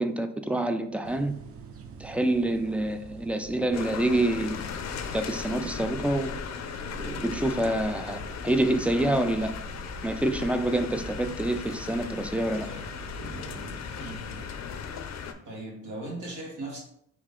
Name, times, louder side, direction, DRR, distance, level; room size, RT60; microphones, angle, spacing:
voice 1, 0.0-1.3 2.0-4.6 5.1-6.4 7.2-9.5 10.0-12.7, right 1 dB, 5° right, 8 dB, 0.3 m, -27 dB
sound 1, 1.0-14.5, right 4 dB, 50° right, 0.6 m, -47 dB
sound 2, 1.9-3.0 3.7-3.9 4.2-4.7 5.0-7.9 9.0-9.5 9.8-12.1 12.4-12.5 12.9-14.0 14.6-14.7, right 2 dB, 30° right, 0.9 m, -45 dB
sound 3, 3.7-15.3, left 6 dB, 60° left, 0.5 m, -37 dB
voice 2, 14.0-14.5 15.4-16.8, right 2 dB, 85° right, -2 dB, 1.6 m, -38 dB
3.9 x 3.1 x 3.7 m, 0.71 s
cardioid pair, 90°, 30 cm